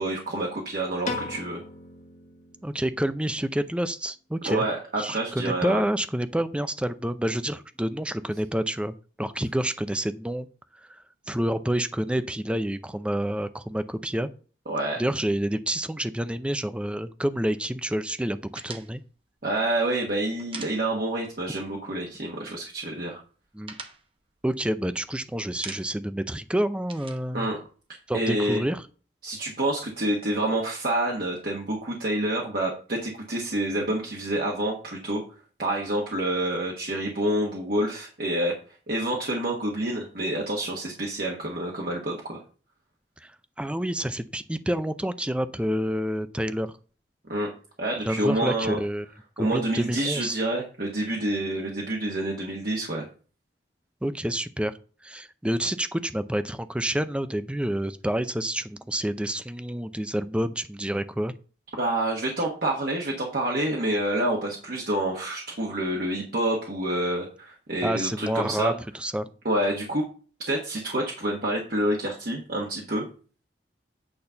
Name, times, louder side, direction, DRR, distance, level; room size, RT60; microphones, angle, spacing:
voice 1, 0.0-1.6 4.4-5.8 14.7-15.0 19.4-23.2 27.3-27.6 28.1-28.6 29.2-35.2 35.6-38.5 38.9-42.4 47.3-47.5 47.8-48.8 49.4-53.1 61.8-68.7 69.4-70.1 70.5-73.1, right 1 dB, 60° right, -1 dB, 1.4 m, -28 dB
Piano, 1.0-3.3, left 3 dB, 45° left, 1.2 m, -37 dB
voice 2, 2.6-4.6 5.0-10.5 11.3-14.3 15.0-19.0 23.5-23.7 24.4-27.5 28.1-28.8 43.2-43.3 43.6-46.7 48.1-49.1 49.4-50.4 54.0-54.7 55.0-61.3 67.8-69.3, right 1 dB, 5° right, 12 dB, 0.4 m, -28 dB
sound 1, 18.6-21.3 21.6-21.8 22.1-22.8 23.1-25.1 25.4-26.2 26.4-28.3, right 4 dB, 30° right, 0.9 m, -43 dB
8.6 x 4.1 x 5.7 m, 0.39 s
head